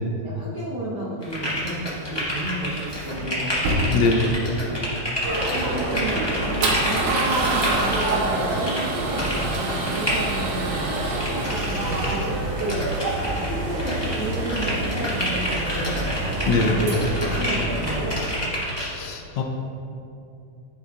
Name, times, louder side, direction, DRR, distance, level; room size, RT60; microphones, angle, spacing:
voice 1, 0.2-16.1 16.6-17.1 17.4-18.5, right 1 dB, 55° right, -9 dB, 1.2 m, -32 dB
sound 1, 1.2-8.3 8.6-8.8 9.2-10.2 10.7-12.3 12.6-13.5 13.8-18.9, equal, 35° left, 0.4 m, -29 dB
Male speech man speaking / Car / Engine starting, 1.3-12.4, right 2 dB, 70° right, 2.1 m, -29 dB
voice 2, 3.9-4.3 16.5-16.8 18.8-19.4, left 3 dB, 80° left, 3 dB, 2.0 m, -22 dB
sound 2, 5.2-18.2, right 2 dB, 90° right, 2.7 m, -28 dB
13.0 x 5.4 x 2.4 m, 2.7 s
omnidirectional pair, 3.4 m